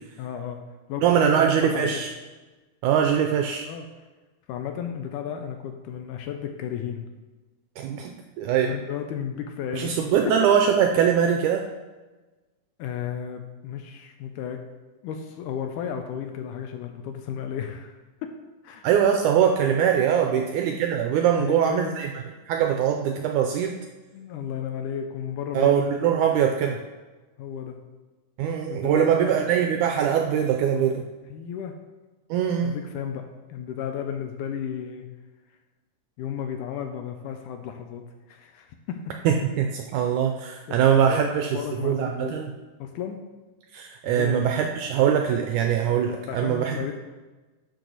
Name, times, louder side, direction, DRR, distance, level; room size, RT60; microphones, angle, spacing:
voice 1, 0.2-0.6 0.9-2.1 3.6-3.9 4.5-7.0 8.6-10.3 12.8-14.6 15.0-18.0 18.6-18.9 20.2-20.5 21.4-21.9 24.1-25.7 27.4-27.8 28.6-29.4 31.3-31.7 32.6-35.1 36.2-39.1 40.7-42.4 42.8-43.2 44.0-44.5 46.3-46.9, left 8 dB, 80° left, 5 dB, 2.0 m, -33 dB
voice 2, 1.0-2.1 2.8-3.7 7.8-8.8 9.7-11.7 18.8-22.1 22.5-23.8 25.5-26.8 28.4-31.1 32.3-32.8 39.3-42.5 43.7-46.9, right 8 dB, 85° right, 4 dB, 1.8 m, -22 dB
12.0 x 4.7 x 4.0 m, 1.2 s
omnidirectional pair, 4.0 m